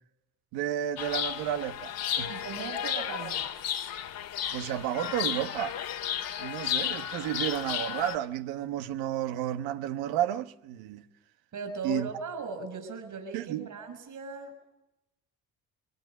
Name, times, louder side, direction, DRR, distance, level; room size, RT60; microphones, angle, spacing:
voice 1, 0.5-2.3 4.5-5.8 6.4-11.0 11.8-12.1 13.3-13.7, right 11 dB, 75° right, 1.3 m, -32 dB
Chirp tweet, 1.0-8.2, left 10 dB, 65° left, 2.2 m, -33 dB
voice 2, 2.3-3.5 11.5-14.5, right 3 dB, 55° right, 6.3 m, -38 dB
23.0 x 18.0 x 9.6 m
hypercardioid pair, 55°, 37 cm